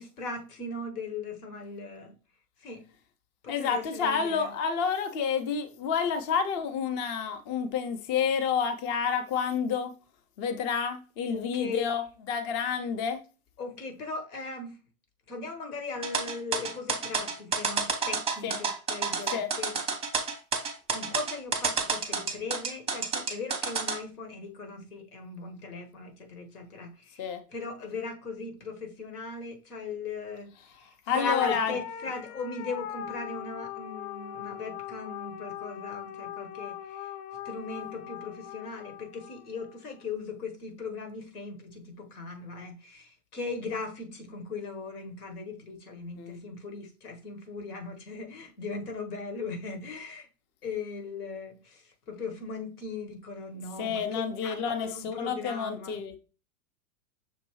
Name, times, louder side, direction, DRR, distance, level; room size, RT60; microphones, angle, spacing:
voice 1, 0.0-2.1 2.6-2.8 3.4-4.5 11.3-11.9 13.6-14.8 15.3-19.8 20.9-30.5 30.8-37.1 37.4-50.3 50.6-56.0, left 4 dB, 85° left, 1.3 m, -38 dB
voice 2, 3.5-9.9 10.4-13.2 18.4-18.6 19.3-19.5 27.2-27.4 31.1-31.7 46.2-46.4 53.8-56.2, left 6 dB, 25° left, 0.4 m, -29 dB
sound 1, 16.0-24.0, right 5 dB, 15° right, 0.7 m, -29 dB
sound 2, 31.2-39.8, left 10 dB, 60° left, 0.7 m, -40 dB
6.2 x 2.6 x 3.0 m
hypercardioid pair, 120°, 44 cm